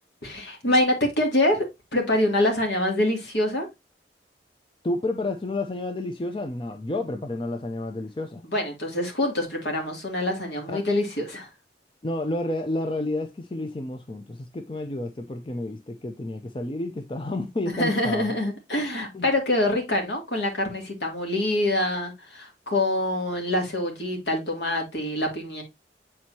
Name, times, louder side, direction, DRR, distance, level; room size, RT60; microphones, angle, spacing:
voice 1, 0.2-1.6 1.9-3.7 8.4-11.5 17.7-25.6, left 1 dB, 70° left, 2.5 m, -25 dB
voice 2, 4.8-8.4 10.7-10.8 12.0-18.3 19.1-19.2, left 2 dB, 25° left, 0.5 m, -30 dB
7.9 x 4.3 x 2.8 m
head